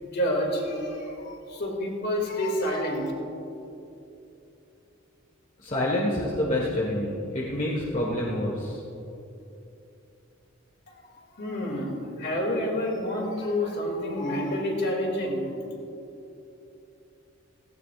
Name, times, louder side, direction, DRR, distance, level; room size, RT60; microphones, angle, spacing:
voice 1, 0.1-3.1 11.4-15.6, left 1 dB, 55° left, 0 dB, 2.5 m, -28 dB
voice 2, 5.6-8.8, left 1 dB, 40° left, -4 dB, 1.5 m, -27 dB
17.5 x 16.5 x 2.5 m, 2.8 s
head